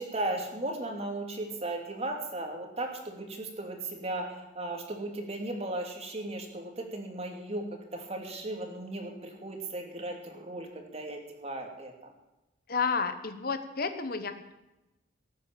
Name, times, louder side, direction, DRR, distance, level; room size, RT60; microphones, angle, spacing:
voice 1, 0.0-12.1, right 2 dB, 35° right, 2 dB, 2.8 m, -36 dB
voice 2, 12.7-14.5, left 5 dB, 50° left, 9 dB, 1.1 m, -31 dB
18.0 x 9.4 x 7.4 m, 0.98 s
head